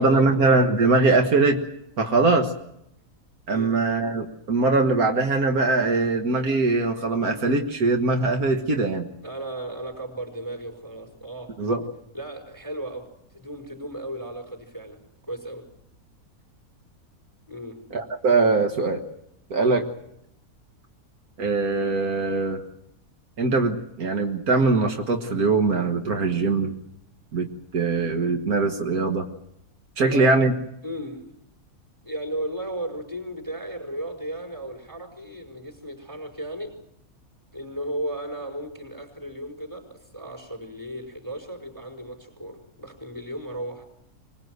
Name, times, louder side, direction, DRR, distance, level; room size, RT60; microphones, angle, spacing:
voice 1, 0.0-1.6 2.0-2.5 3.5-9.1 11.6-11.8 17.9-19.0 19.5-19.8 21.4-22.6 23.4-26.8 27.3-27.5 27.7-29.3 30.0-30.5, right 3 dB, 75° right, 4 dB, 1.9 m, -22 dB
voice 2, 3.5-3.8 9.2-11.5 12.1-15.7 17.5-17.8 19.6-19.9 30.0-30.4 30.8-31.4 32.0-36.7 37.5-43.8, right 1 dB, 10° right, 0 dB, 5.2 m, -35 dB
25.0 x 19.5 x 8.0 m, 0.79 s
omnidirectional pair, 1.6 m